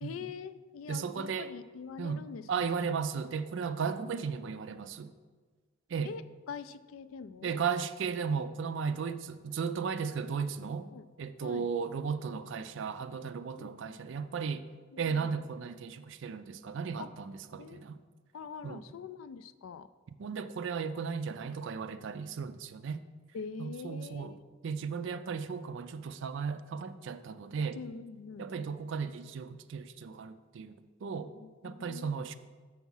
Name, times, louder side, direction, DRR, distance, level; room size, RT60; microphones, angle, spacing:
voice 1, 0.0-2.5 2.8-3.0 3.9-4.5 6.0-7.6 10.9-11.0 11.4-11.7 13.6-13.8 14.9-15.3 17.0-17.1 17.6-17.8 18.3-19.9 23.3-24.4 27.7-28.5 31.3-32.2, left 5 dB, 80° left, 14 dB, 0.3 m, -44 dB
voice 2, 0.9-1.5 2.0-5.1 5.9-6.1 7.4-10.9 11.2-14.7 15.0-18.0 18.6-18.8 20.2-23.0 23.6-24.4 24.6-27.8 28.4-31.3 31.6-32.3, right 6 dB, 60° right, 12 dB, 0.4 m, -35 dB
7.1 x 4.6 x 5.5 m, 1.4 s
head